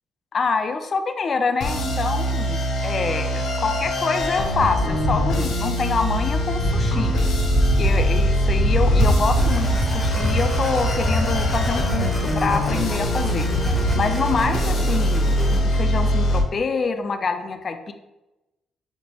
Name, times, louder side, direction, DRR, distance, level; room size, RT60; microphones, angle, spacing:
voice 1, 0.3-7.1 7.8-15.3 15.6-17.9, left 4 dB, 45° left, 7 dB, 0.4 m, -26 dB
sound 1, 1.6-16.4, equal, 80° left, 0.8 m, -23 dB
sound 2, 4.2-13.9, right 1 dB, 70° right, 1.2 m, -24 dB
sound 3, 9.4-15.6, left 1 dB, 15° left, 0.7 m, -31 dB
5.3 x 2.1 x 2.9 m, 0.99 s
cardioid pair, 90°, 0 cm